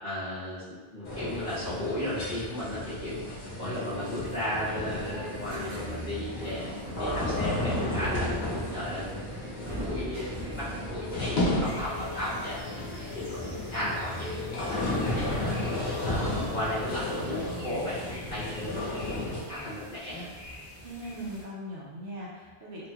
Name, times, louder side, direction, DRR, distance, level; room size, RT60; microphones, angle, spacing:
voice 1, 0.0-8.3 8.7-9.1 9.5-12.6 12.9-15.6 16.0-20.3, equal, 45° left, -13 dB, 0.9 m, -35 dB
sound 1, 1.0-19.4, left 1 dB, 75° left, 1.0 m, -33 dB
sound 2, 3.9-11.4, equal, 40° right, 0.6 m, -40 dB
sound 3, 11.6-21.4, left 1 dB, 25° left, 1.2 m, -47 dB
voice 2, 20.8-22.9, equal, 80° right, -5 dB, 1.0 m, -40 dB
3.0 x 2.7 x 2.2 m, 1.3 s
omnidirectional pair, 1.1 m